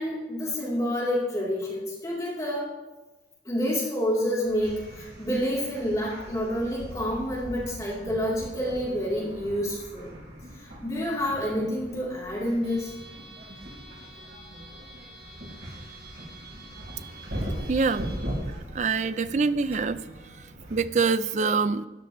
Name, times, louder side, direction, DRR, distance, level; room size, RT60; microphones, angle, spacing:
voice 1, 0.0-2.7 3.4-10.1 10.5-12.9, equal, 20° left, -6 dB, 3.1 m, -28 dB
sound 1, 4.4-20.8, equal, 75° right, 3.9 m, -40 dB
voice 2, 17.7-18.1 18.7-20.0 20.7-21.9, right 4 dB, 40° right, 14 dB, 0.4 m, -25 dB
13.0 x 10.0 x 3.1 m, 1.1 s
head